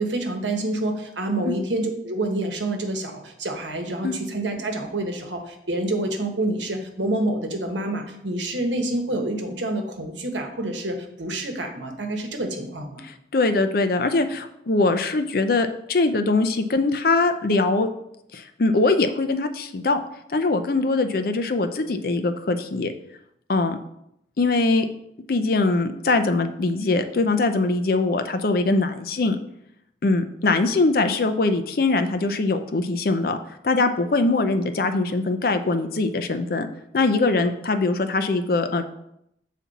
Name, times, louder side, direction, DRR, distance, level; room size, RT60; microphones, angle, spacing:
voice 1, 0.0-13.0, right 1 dB, 85° right, 4 dB, 1.1 m, -27 dB
voice 2, 13.0-17.9 18.3-20.0 20.3-22.9 23.5-23.8 24.4-24.9 25.3-29.4 30.0-33.4 33.6-36.7 36.9-38.8, left 3 dB, 55° left, 8 dB, 0.5 m, -22 dB
7.2 x 4.2 x 4.1 m, 0.77 s
head